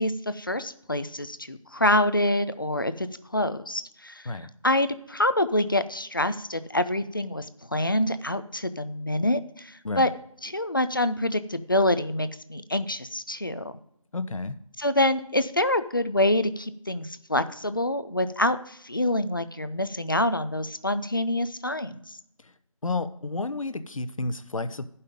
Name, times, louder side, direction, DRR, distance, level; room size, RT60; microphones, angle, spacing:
voice 1, 0.0-3.1 3.3-4.2 4.6-7.5 7.7-10.1 10.4-13.7 14.8-22.2, left 1 dB, 35° left, 12 dB, 0.4 m, -26 dB
voice 2, 14.1-14.6 22.4-22.5 22.8-24.8, left 3 dB, 65° left, 12 dB, 0.8 m, -31 dB
11.5 x 5.5 x 5.2 m, 0.71 s
figure-of-eight pair, 175°, 18 cm